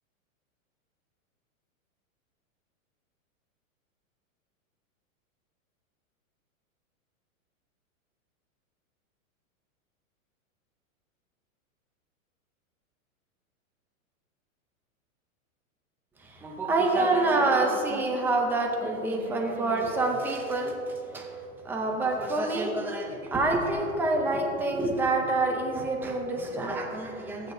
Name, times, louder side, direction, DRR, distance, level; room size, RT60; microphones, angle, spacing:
voice 1, 16.2-27.5, right 2 dB, 5° right, 2 dB, 0.4 m, -27 dB
15.0 x 8.6 x 2.7 m, 2.6 s
hypercardioid pair, 145°, 42 cm